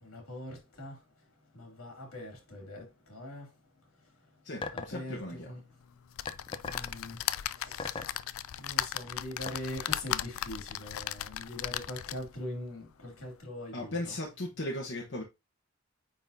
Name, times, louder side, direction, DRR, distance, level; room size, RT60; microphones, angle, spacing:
voice 1, 0.0-1.0 1.5-3.6 4.7-5.6 6.6-8.2 8.6-14.1, left 1 dB, 90° left, 2.6 m, -42 dB
voice 2, 4.4-5.5 13.7-15.2, left 1 dB, 55° left, 1.2 m, -37 dB
sound 1, 4.6-5.0 6.3-6.9 7.8-8.2 9.5-9.6, left 3 dB, 25° left, 0.5 m, -37 dB
sound 2, 6.1-12.4 12.9-13.0 13.3-13.4, left 12 dB, 75° left, 0.3 m, -36 dB
9.2 x 4.1 x 2.7 m
head